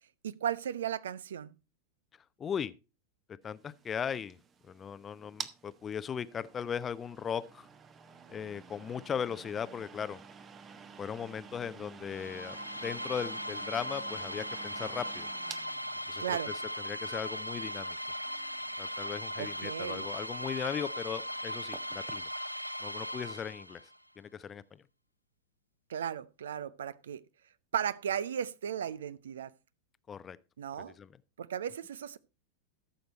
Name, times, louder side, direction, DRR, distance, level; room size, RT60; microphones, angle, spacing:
voice 1, 0.2-1.5 16.2-16.5 19.4-20.1 25.9-27.2 27.7-29.5 30.6-30.9 31.4-32.2, right 9 dB, 65° right, 0.5 m, -35 dB
voice 2, 2.4-2.7 3.3-4.4 4.6-7.7 8.3-10.2 11.0-15.3 16.1-16.4 16.8-18.0 18.8-22.3 22.8-23.8 24.2-24.8 30.1-30.4 30.8-31.1, left 7 dB, 20° left, 0.5 m, -38 dB
sound 1, 3.6-22.3, right 7 dB, 25° right, 0.8 m, -51 dB
sound 2, 12.1-24.0, equal, 90° left, 0.5 m, -38 dB
14.0 x 6.5 x 4.2 m
figure-of-eight pair, 90°, 0 cm